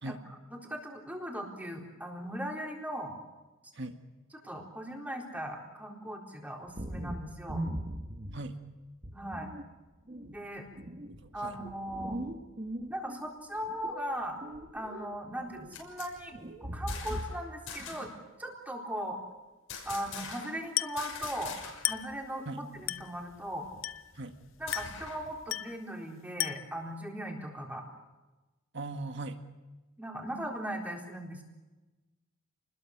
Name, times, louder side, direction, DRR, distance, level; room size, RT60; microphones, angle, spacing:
voice 1, 0.5-3.2 4.4-7.6 9.1-9.5 10.2-10.7 11.3-12.2 12.9-14.4 14.7-16.3 16.6-18.1 18.4-19.2 19.8-23.7 24.6-27.8 30.0-31.4, equal, 10° right, 0 dB, 4.0 m, -38 dB
sound 1, 6.8-8.6 9.0-9.7 10.1-13.2 13.6-15.2 15.4-15.8 16.3-17.5 17.8-18.2, right 1 dB, 35° right, 1.5 m, -40 dB
voice 2, 11.1-11.6 22.5-22.7 24.1-24.4 28.7-29.4, right 2 dB, 55° right, 6 dB, 1.8 m, -39 dB
sound 2, 15.4-17.4 17.7-18.2 19.7-20.7 21.0-22.0 22.3-22.4 22.7-25.3, left 6 dB, 85° left, 6.5 m, -44 dB
Glass, 20.8-21.1 21.8-22.2 22.9-23.2 23.8-24.2 24.7-25.1 25.5-25.8 26.4-26.8, left 14 dB, 70° left, 0.7 m, -34 dB
29.0 x 21.0 x 6.6 m, 1.1 s
head